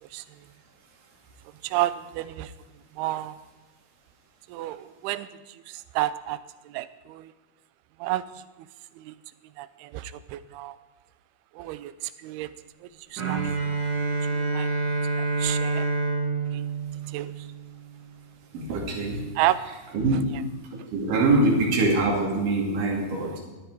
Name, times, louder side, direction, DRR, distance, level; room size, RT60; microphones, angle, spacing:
voice 1, 1.6-2.5 3.0-3.4 4.5-6.4 6.7-7.3 8.0-8.3 9.0-9.2 9.6-10.8 11.6-12.5 13.1-13.8 14.3-14.7 15.1-15.9 16.5-16.7 17.1-17.5 19.4-19.6, right 15 dB, 80° right, 14 dB, 2.6 m, -31 dB
Bowed string instrument, 13.2-18.0, right 4 dB, 35° right, 1.7 m, -27 dB
voice 2, 18.5-19.3 19.9-20.4 20.9-23.4, right 2 dB, 55° right, -1 dB, 3.9 m, -24 dB
16.5 x 12.5 x 4.7 m, 1.2 s
omnidirectional pair, 4.6 m